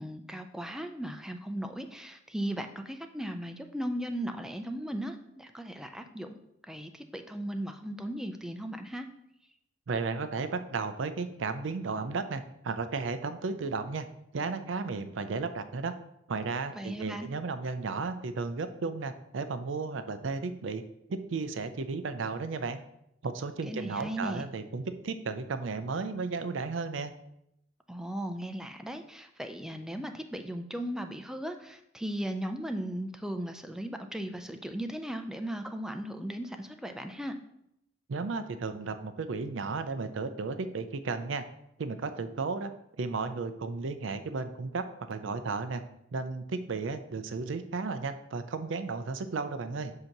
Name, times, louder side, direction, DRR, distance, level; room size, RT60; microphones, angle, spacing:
voice 1, 0.0-6.3 6.7-9.1 16.7-17.3 23.7-24.5 27.9-37.4, right 1 dB, 5° right, 6 dB, 0.4 m, -37 dB
voice 2, 9.9-14.1 14.3-15.9 16.3-20.8 21.1-22.8 23.2-27.1 38.1-41.4 41.8-42.7 43.0-45.8 46.1-49.9, right 4 dB, 80° right, 10 dB, 0.5 m, -34 dB
7.9 x 2.9 x 5.8 m, 0.80 s
head